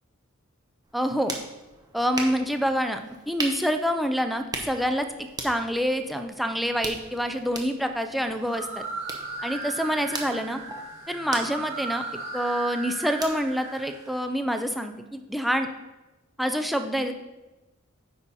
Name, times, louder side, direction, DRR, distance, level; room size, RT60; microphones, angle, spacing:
sound 1, 0.8-14.6, right 3 dB, 20° right, 0.9 m, -40 dB
voice 1, 0.9-1.3 1.9-3.0 3.3-8.8 9.4-10.6 11.1-12.0 12.3-15.7 16.4-17.1, equal, ahead, 6 dB, 0.5 m, -27 dB
sound 2, 8.3-14.1, right 3 dB, 65° right, 2.9 m, -37 dB
9.2 x 5.3 x 4.2 m, 1.1 s
head